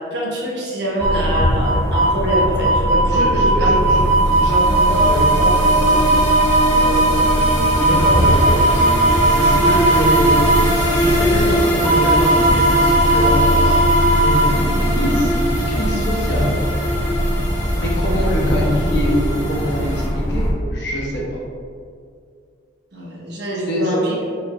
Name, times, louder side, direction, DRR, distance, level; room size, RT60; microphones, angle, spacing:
voice 1, 0.0-3.7 22.9-24.2, right 1 dB, 65° right, -5 dB, 1.1 m, -24 dB
sound 1, 1.0-20.5, right 1 dB, 10° left, 0.5 m, -17 dB
voice 2, 3.1-4.0 4.4-6.1 6.7-8.8 9.3-10.3 10.9-13.7 14.2-16.5 17.8-21.2 23.7-24.1, equal, 65° left, -4 dB, 1.0 m, -24 dB
sound 2, 3.8-20.1, equal, 90° left, 1.1 m, -23 dB
4.5 x 3.7 x 2.7 m, 2.2 s
head